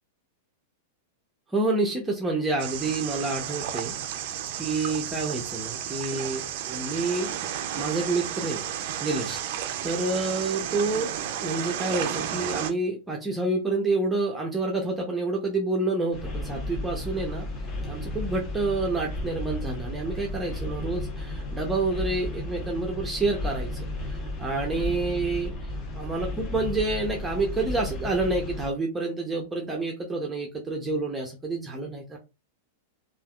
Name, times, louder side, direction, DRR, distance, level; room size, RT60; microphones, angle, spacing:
voice 1, 1.5-3.9 4.6-8.6 9.0-9.4 9.8-11.1 11.4-17.5 17.9-25.5 25.9-32.2, right 3 dB, 10° right, 0 dB, 0.6 m, -28 dB
sound 1, 2.6-12.7, right 10 dB, 60° right, 0.4 m, -32 dB
sound 2, 16.1-28.7, left 1 dB, 30° left, 1.0 m, -33 dB
3.2 x 2.3 x 2.3 m, 0.27 s
hypercardioid pair, 135°, 0 cm